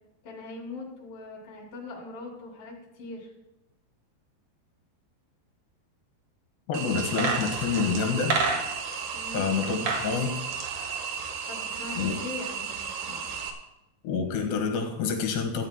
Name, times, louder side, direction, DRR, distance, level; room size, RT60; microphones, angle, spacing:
voice 1, 0.2-3.3 9.1-9.5 11.5-13.3, left 3 dB, 55° left, 0 dB, 4.3 m, -41 dB
voice 2, 6.7-8.4 9.3-10.4 12.0-12.1 14.0-15.7, left 5 dB, 75° left, 3 dB, 3.5 m, -27 dB
sound 1, 6.7-13.5, right 6 dB, 70° right, 2.9 m, -34 dB
sound 2, 7.0-9.0 9.6-10.1 10.4-11.7 12.0-12.1, right 4 dB, 55° right, 2.3 m, -29 dB
17.5 x 14.5 x 2.2 m, 0.92 s
omnidirectional pair, 5.0 m